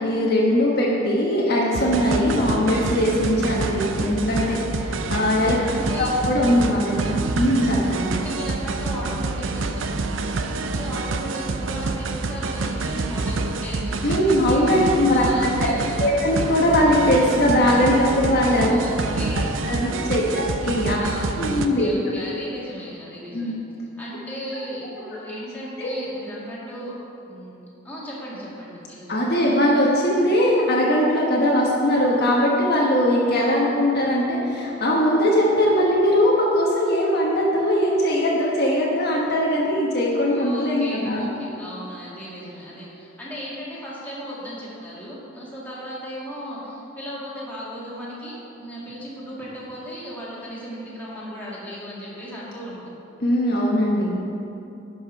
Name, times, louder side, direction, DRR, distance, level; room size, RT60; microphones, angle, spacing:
voice 1, 0.0-5.6 6.0-8.1 14.0-15.2 15.6-18.7 19.7-21.0 21.4-21.9 23.3-23.5 25.8-25.9 29.1-41.3 53.2-54.1, left 1 dB, 55° left, -4 dB, 1.3 m, -20 dB
sound 1, 1.7-21.7, right 3 dB, 75° right, 0.5 m, -27 dB
voice 2, 5.6-6.1 8.1-14.7 15.1-16.0 18.6-19.5 20.0-20.4 21.0-23.6 24.0-26.9 27.3-29.6 40.3-53.0, equal, 10° left, -8 dB, 2.3 m, -36 dB
11.0 x 5.4 x 5.7 m, 2.9 s
head